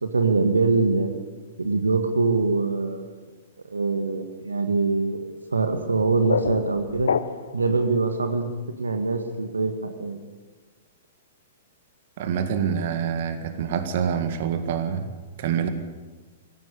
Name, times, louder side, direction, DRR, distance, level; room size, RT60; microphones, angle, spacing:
voice 1, 0.0-1.1 1.6-3.2 3.7-5.2 5.5-7.1 7.5-8.5 8.8-10.2, right 3 dB, 80° right, 7 dB, 1.6 m, -23 dB
sound 1, 5.8-7.7, left 6 dB, 70° left, 0.7 m, -28 dB
voice 2, 12.2-15.7, right 7 dB, 55° right, 10 dB, 1.9 m, -26 dB
17.5 x 15.5 x 9.8 m, 1.3 s
figure-of-eight pair, 105°, 0 cm